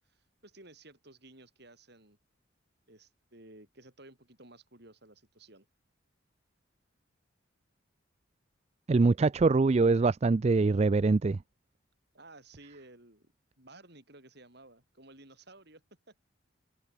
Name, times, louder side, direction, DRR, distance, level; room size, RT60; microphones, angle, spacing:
voice 1, 0.1-2.2 2.9-5.7 12.1-13.3 13.6-16.1, right 2 dB, 55° right, 7.4 m, -55 dB
voice 2, 8.9-11.4, right 3 dB, 30° right, 0.4 m, -24 dB
head